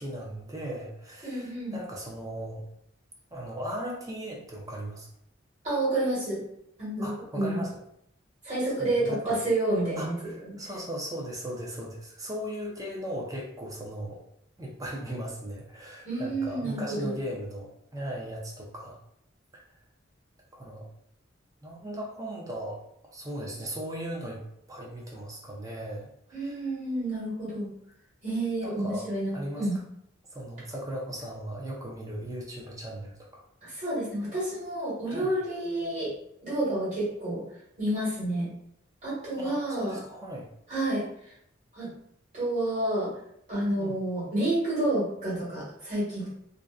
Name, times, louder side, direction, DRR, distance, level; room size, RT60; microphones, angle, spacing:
voice 1, 0.0-2.6 3.3-5.1 7.0-7.8 8.8-9.4 10.0-14.2 14.6-19.0 19.5-19.6 20.5-20.9 21.6-24.4 24.7-26.7 28.6-29.0 29.3-29.6 30.3-33.4 35.1-35.3 39.4-40.5 43.8-43.9, right 1 dB, 20° right, -2 dB, 0.5 m, -37 dB
voice 2, 1.2-1.7 5.6-6.4 6.8-7.6 8.4-10.6 16.0-17.1 26.3-27.7 28.2-29.8 33.6-36.1 36.4-37.4 37.8-38.5 39.0-40.0 40.7-41.0 41.7-41.9 42.3-43.1 43.5-46.3, right 1 dB, 40° right, -7 dB, 1.3 m, -29 dB
2.5 x 2.1 x 2.3 m, 0.73 s
head